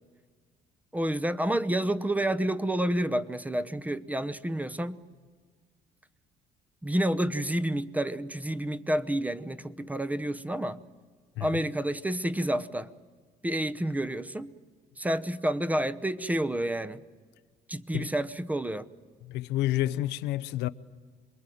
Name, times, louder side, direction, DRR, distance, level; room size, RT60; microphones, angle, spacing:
voice 1, 0.9-5.0 6.8-10.8 11.4-12.9 13.4-14.5 15.0-17.0 17.7-18.9, right 1 dB, 10° right, 0.9 m, -29 dB
voice 2, 19.2-20.7, left 15 dB, 90° left, 0.7 m, -29 dB
26.5 x 22.0 x 9.2 m
cardioid pair, 110°, 17 cm